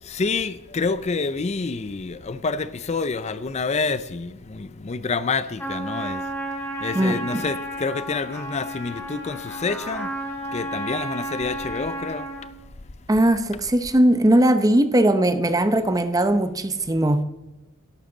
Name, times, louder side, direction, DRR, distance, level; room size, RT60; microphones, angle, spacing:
voice 1, 0.0-6.3 6.8-10.1 10.5-12.3, left 4 dB, 30° left, 0.5 m, -28 dB
Trumpet, 5.6-12.5, right 1 dB, 10° left, 2.0 m, -32 dB
voice 2, 6.9-7.4 13.1-17.2, right 1 dB, 15° right, 0.7 m, -19 dB
13.0 x 11.5 x 3.9 m
head